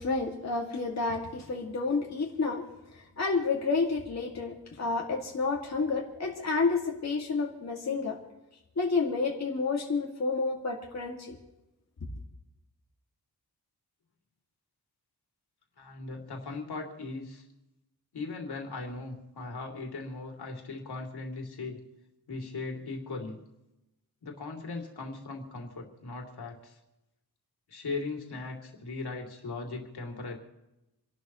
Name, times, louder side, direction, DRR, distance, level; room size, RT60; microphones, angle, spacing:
voice 1, 0.0-2.6 2.9-8.2 8.8-11.4, left 4 dB, 45° left, -1 dB, 2.2 m, -30 dB
voice 2, 15.8-17.4 18.1-21.8 22.3-23.4 24.2-26.8 27.7-30.4, left 3 dB, 80° left, 1 dB, 2.9 m, -38 dB
29.0 x 12.0 x 3.1 m, 0.96 s
wide cardioid pair, 160°, 38 cm